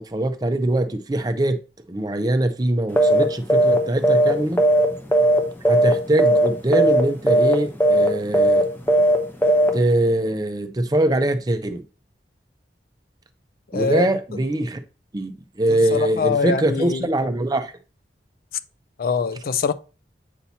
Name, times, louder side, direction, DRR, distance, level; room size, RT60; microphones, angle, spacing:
voice 1, 0.0-1.6 1.9-4.6 5.7-8.7 9.7-11.8 13.7-14.8 15.1-17.7, right 1 dB, 20° right, 0.5 m, -22 dB
sound 1, 3.0-3.2 3.5-3.8 4.0-5.4 5.7-5.9 6.2-6.5 6.7-7.0 7.3-7.5 7.8-8.1 8.3-8.6 8.9-9.2 9.4-9.7, right 1 dB, 10° left, 0.7 m, -16 dB
voice 2, 13.7-14.1 15.7-17.1 19.0-19.7, left 5 dB, 55° left, 0.4 m, -23 dB
8.1 x 2.8 x 4.1 m
head